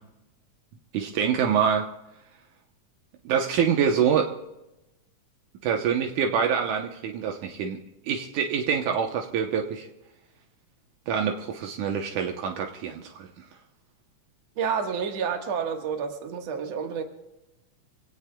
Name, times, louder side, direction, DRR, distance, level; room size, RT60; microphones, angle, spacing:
voice 1, 0.9-1.9 3.3-4.3 5.6-7.8 8.1-9.9 11.1-13.3, right 7 dB, 80° right, 3 dB, 2.4 m, -25 dB
voice 2, 14.6-17.0, right 6 dB, 60° right, 4 dB, 2.5 m, -29 dB
26.5 x 17.5 x 2.3 m, 0.95 s
omnidirectional pair, 3.5 m